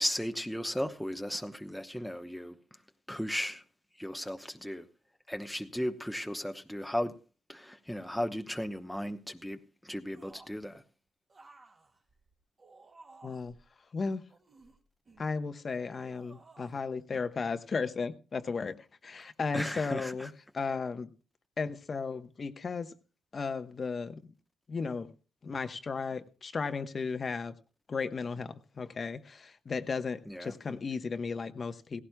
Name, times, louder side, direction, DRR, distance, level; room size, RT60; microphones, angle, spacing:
voice 1, 0.0-2.6 3.1-3.6 4.0-4.9 5.3-7.2 7.5-10.8 19.5-20.3 30.3-30.5, equal, ahead, 0.9 m, -35 dB
sound 1, 10.1-10.6 11.3-13.6 14.3-15.4 16.0-16.8 17.1-17.3, right 3 dB, 35° right, 2.4 m, -57 dB
voice 2, 13.2-13.5 13.9-14.2 15.2-21.1 21.6-22.9 23.3-24.2 24.7-25.1 25.4-27.5 27.9-32.0, left 4 dB, 40° left, 1.0 m, -35 dB
17.0 x 16.0 x 2.3 m
cardioid pair, 90°, 0 cm